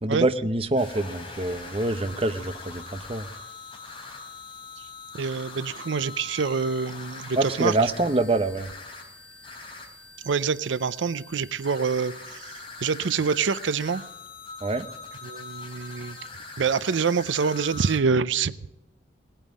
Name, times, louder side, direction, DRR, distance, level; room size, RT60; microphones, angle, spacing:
voice 1, 0.0-3.3 7.4-8.7 14.6-14.9, right 2 dB, 30° right, 10 dB, 0.8 m, -25 dB
sound 1, 0.8-18.0, left 4 dB, 25° left, 3.8 m, -42 dB
voice 2, 5.2-7.8 10.2-14.0 15.2-16.2 16.6-18.7, right 5 dB, 80° right, 16 dB, 0.5 m, -26 dB
19.0 x 9.0 x 8.5 m, 0.91 s
head